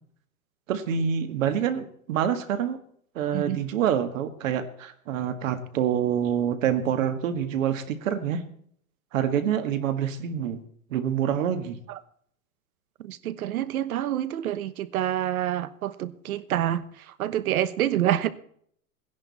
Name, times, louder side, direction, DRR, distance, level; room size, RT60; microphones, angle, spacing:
voice 1, 0.7-2.8 3.2-8.4 9.1-10.6 10.9-11.8, right 8 dB, 65° right, 1.8 m, -26 dB
voice 2, 13.0-18.3, right 11 dB, 85° right, 1.2 m, -27 dB
16.5 x 10.5 x 4.2 m
supercardioid pair, 165°, 42 cm